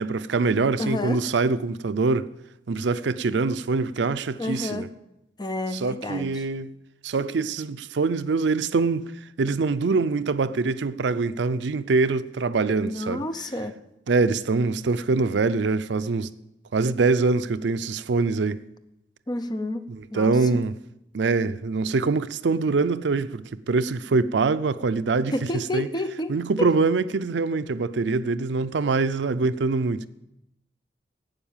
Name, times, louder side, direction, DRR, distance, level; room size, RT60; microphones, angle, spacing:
voice 1, 0.0-2.3 2.7-4.9 5.7-6.7 7.0-9.0 9.4-13.2 14.1-16.3 16.7-18.6 19.9-20.7 21.1-25.9 26.3-30.1, right 4 dB, 70° right, 0.5 m, -24 dB
voice 2, 0.8-1.2 4.4-4.9 5.4-6.5 12.8-13.8 19.3-19.8 20.1-20.4 25.3-26.3 26.6-26.7, left 1 dB, 25° left, 0.8 m, -30 dB
12.0 x 8.8 x 7.2 m
head